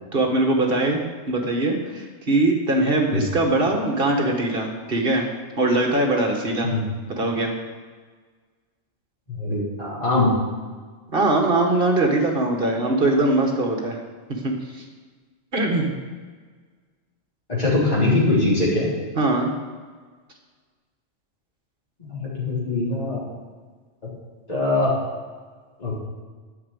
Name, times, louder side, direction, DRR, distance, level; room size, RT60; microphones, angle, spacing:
voice 1, 0.1-5.3 5.6-6.7 7.1-7.5 11.1-14.0 14.4-14.8 15.5-15.9 19.2-19.5, right 2 dB, 45° right, 2 dB, 1.8 m, -21 dB
voice 2, 9.3-10.3 17.5-18.9 22.0-23.2 24.5-24.9 25.8-25.9, left 2 dB, 30° left, -6 dB, 3.6 m, -22 dB
10.5 x 6.3 x 8.3 m, 1.5 s
omnidirectional pair, 1.3 m